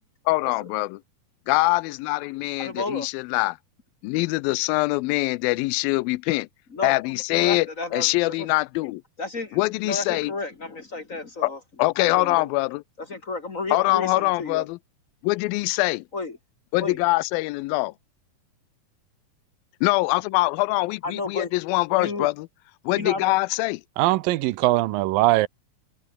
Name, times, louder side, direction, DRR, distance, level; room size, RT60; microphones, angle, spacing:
voice 1, 0.3-1.0 1.5-3.6 4.0-6.5 6.8-9.0 9.5-10.3 11.4-11.5 11.8-12.8 13.7-14.8 15.2-16.0 16.7-17.9 19.8-22.5 22.9-23.8, left 22 dB, 90° left, 2.4 m, -23 dB
voice 2, 2.6-3.1 6.7-8.5 9.2-11.6 12.0-12.5 13.1-14.6 16.1-16.4 16.8-17.0 21.0-21.5 21.9-22.3 22.9-23.3, left 3 dB, 35° left, 1.3 m, -32 dB
voice 3, 24.0-25.5, right 17 dB, 80° right, 2.4 m, -21 dB
omnidirectional pair, 4.1 m